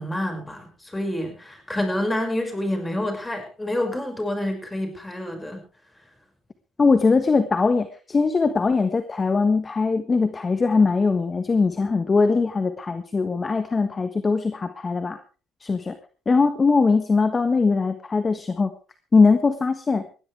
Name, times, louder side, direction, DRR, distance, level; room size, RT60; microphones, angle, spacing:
voice 1, 0.0-5.6, left 1 dB, 15° left, 5 dB, 6.0 m, -28 dB
voice 2, 6.8-15.2 15.6-16.0 16.3-18.7 19.1-20.0, left 4 dB, 30° left, 9 dB, 1.4 m, -21 dB
20.0 x 15.5 x 3.5 m, 0.36 s
cardioid pair, 90°, 0 cm